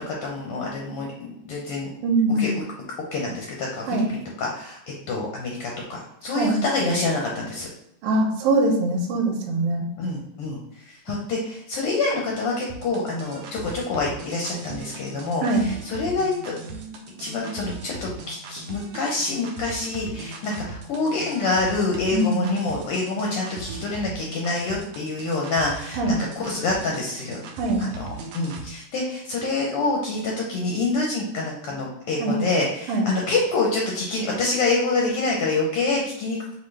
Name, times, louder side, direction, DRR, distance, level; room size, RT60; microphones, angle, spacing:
voice 1, 0.0-1.9 2.4-2.5 3.1-4.8 5.1-7.7 10.0-16.6 17.2-26.0 26.4-27.4 27.8-36.4, left 3 dB, 75° left, -1 dB, 1.3 m, -26 dB
voice 2, 2.0-2.5 3.9-4.1 6.3-6.6 8.0-9.9 15.4-15.7 22.1-22.5 26.0-26.1 27.6-27.8 32.2-32.4 32.9-33.1, right 2 dB, 65° right, 1 dB, 1.6 m, -22 dB
sound 1, 12.7-28.7, right 3 dB, 85° right, 1.3 m, -39 dB
5.7 x 2.6 x 3.2 m, 0.79 s
omnidirectional pair, 3.3 m